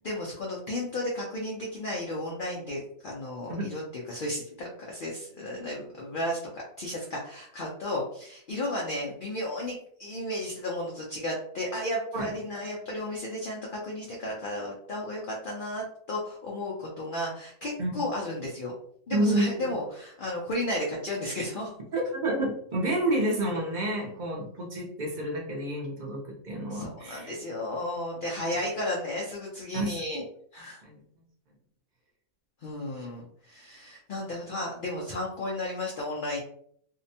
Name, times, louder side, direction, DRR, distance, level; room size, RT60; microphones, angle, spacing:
voice 1, 0.0-18.7 19.1-21.7 26.7-30.2 30.5-30.8 32.6-36.4, left 1 dB, 70° left, -2 dB, 0.5 m, -33 dB
voice 2, 19.1-19.7 21.9-27.3 29.7-29.9 30.8-31.0, right 1 dB, 45° right, -2 dB, 0.6 m, -29 dB
2.7 x 2.1 x 2.6 m, 0.65 s
omnidirectional pair, 1.4 m